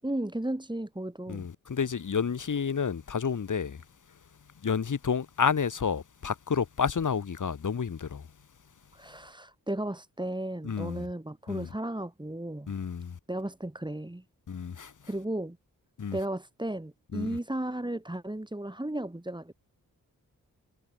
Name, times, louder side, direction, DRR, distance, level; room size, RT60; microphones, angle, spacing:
voice 1, 0.0-1.5 8.9-12.7 13.3-14.2 15.1-15.6 16.1-19.5, right 1 dB, 10° right, 6.2 m, -34 dB
voice 2, 1.3-3.8 4.6-8.3 10.6-11.1 11.5-11.7 12.7-13.2 14.5-14.9 16.0-16.2 17.1-17.4, left 6 dB, 55° left, 2.7 m, -30 dB
cardioid pair, 55°, 36 cm